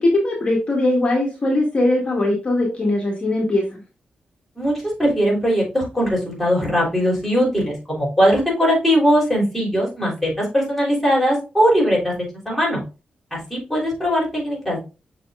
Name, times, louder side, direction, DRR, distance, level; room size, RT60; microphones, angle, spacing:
voice 1, 0.0-3.8, left 1 dB, 40° left, -1 dB, 1.8 m, -20 dB
voice 2, 4.6-12.1 12.5-12.8 13.3-14.9, equal, 5° left, -4 dB, 3.5 m, -20 dB
6.6 x 6.4 x 2.4 m, 0.31 s
wide cardioid pair, 120°, 3 cm